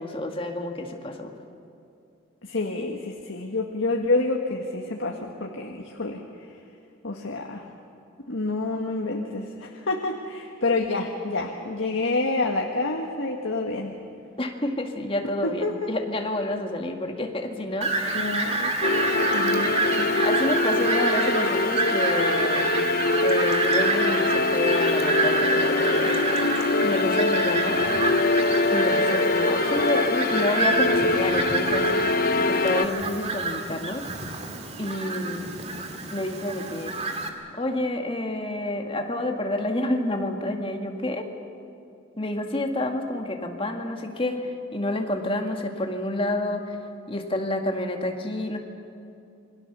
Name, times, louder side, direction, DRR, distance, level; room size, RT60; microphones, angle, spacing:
voice 1, 0.0-1.3 14.4-18.2 20.2-22.7 23.2-27.8 28.7-31.9 32.5-34.1 34.8-35.4 36.1-36.9 37.5-41.3 42.2-46.8 47.1-48.6, left 1 dB, 30° left, 3 dB, 2.0 m, -29 dB
voice 2, 2.4-6.2 7.0-7.7 8.3-14.0 15.4-15.9 18.1-18.7 19.3-20.1, left 2 dB, 90° left, 1 dB, 1.6 m, -28 dB
Fowl, 17.8-37.3, right 3 dB, 35° right, 2.2 m, -28 dB
sound 1, 18.8-32.9, left 3 dB, 50° left, 0.7 m, -24 dB
28.0 x 22.0 x 6.9 m, 2.6 s
head